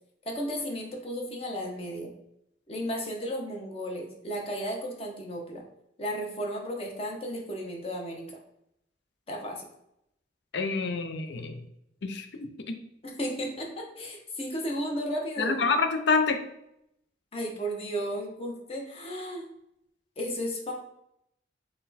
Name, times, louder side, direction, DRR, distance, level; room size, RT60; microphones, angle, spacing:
voice 1, 0.3-2.1 2.7-5.6 6.0-8.4 9.3-9.7 13.0-15.7 17.3-19.4 20.2-20.7, equal, 35° left, 0 dB, 0.8 m, -34 dB
voice 2, 10.5-11.6 12.0-12.8 15.4-16.4, left 4 dB, 75° left, 6 dB, 0.5 m, -27 dB
4.2 x 2.2 x 4.0 m, 0.77 s
head